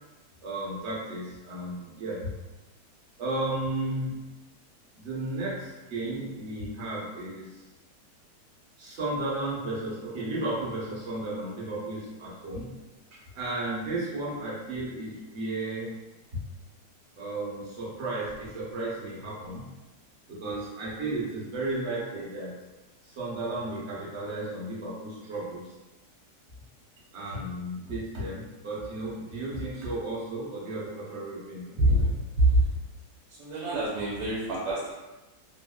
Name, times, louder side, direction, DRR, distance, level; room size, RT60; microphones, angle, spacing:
voice 1, 0.4-2.3 3.2-4.2 5.0-7.6 8.8-12.7 13.3-16.0 17.2-19.7 20.3-22.5 23.0-25.7 27.1-31.8, right 2 dB, 50° right, -6 dB, 1.0 m, -34 dB
voice 2, 31.8-32.7 33.3-34.9, right 1 dB, 85° right, -5 dB, 1.3 m, -25 dB
3.0 x 2.6 x 2.2 m, 1.1 s
omnidirectional pair, 1.9 m